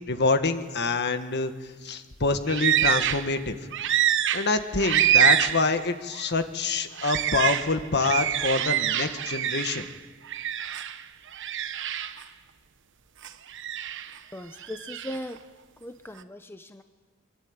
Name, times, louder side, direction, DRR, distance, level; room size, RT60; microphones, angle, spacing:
voice 1, 0.1-1.5 1.8-3.6 4.3-9.9, left 3 dB, 55° left, 9 dB, 1.6 m, -26 dB
sound 1, 2.5-3.3 3.7-5.7 6.1-6.3 7.0-9.9 10.3-11.0 11.3-12.2 13.2-14.2 14.6-15.2, right 11 dB, 60° right, 1.0 m, -25 dB
voice 2, 14.3-15.4 15.8-16.8, left 1 dB, 10° left, 8 dB, 0.9 m, -38 dB
25.0 x 23.0 x 8.9 m, 1.4 s
head